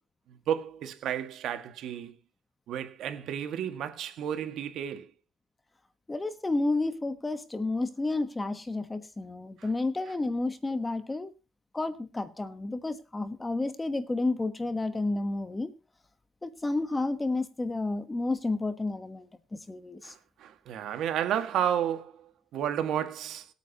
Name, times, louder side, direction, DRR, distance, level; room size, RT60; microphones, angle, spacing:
voice 1, 0.3-2.2 2.7-5.1 9.6-9.7 20.0-23.5, right 9 dB, 60° right, 1.9 m, -32 dB
voice 2, 6.1-11.3 11.7-15.7 16.4-20.1, left 2 dB, 15° left, 1.2 m, -31 dB
26.5 x 9.2 x 3.0 m
cardioid pair, 125°, 0 cm